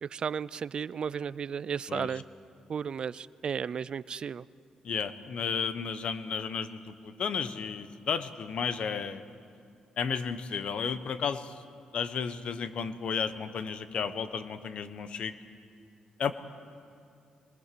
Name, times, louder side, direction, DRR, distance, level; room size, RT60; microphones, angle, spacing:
voice 1, 0.0-2.2 2.7-4.5, right 7 dB, 45° right, 19 dB, 0.4 m, -34 dB
voice 2, 4.8-9.3 10.0-11.5 11.9-15.3 16.2-16.3, left 6 dB, 60° left, 11 dB, 1.1 m, -33 dB
22.0 x 21.5 x 6.9 m, 2.4 s
cardioid pair, 110°, 2 cm